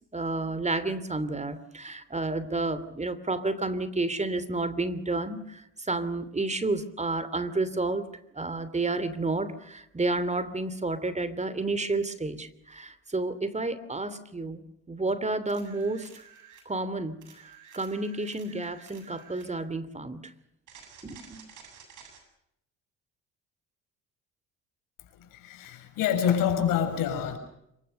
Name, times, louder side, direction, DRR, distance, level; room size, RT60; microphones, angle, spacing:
voice 1, 0.1-8.0 8.3-14.6 14.9-16.1 16.7-17.3 17.7-20.2 21.0-21.4, right 2 dB, 20° right, 14 dB, 2.9 m, -30 dB
sound 1, 15.5-16.7 17.2-19.5 20.7-22.2 25.6-25.7, right 7 dB, 60° right, 7.9 m, -52 dB
voice 2, 25.1-27.4, left 8 dB, 70° left, 7 dB, 6.4 m, -27 dB
26.0 x 24.0 x 6.6 m, 0.79 s
hypercardioid pair, 65°, 34 cm